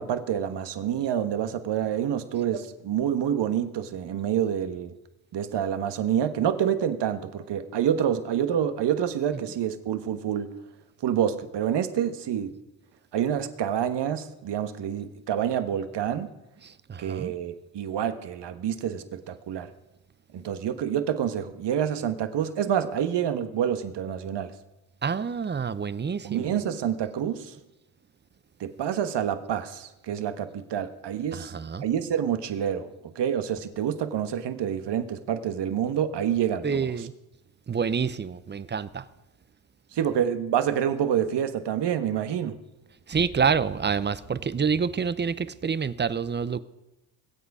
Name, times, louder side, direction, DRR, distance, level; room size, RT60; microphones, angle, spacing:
voice 1, 0.0-4.9 5.3-10.5 11.0-12.5 13.1-16.3 17.0-19.7 20.3-24.5 26.2-27.5 28.6-31.5 31.8-36.9 39.9-42.6, right 9 dB, 55° right, 1.4 m, -27 dB
voice 2, 16.6-17.3 25.0-26.5 31.3-31.8 36.6-37.1 37.7-39.1 43.1-46.6, right 6 dB, 20° right, 0.7 m, -27 dB
21.0 x 8.1 x 4.9 m
supercardioid pair, 65°, 49 cm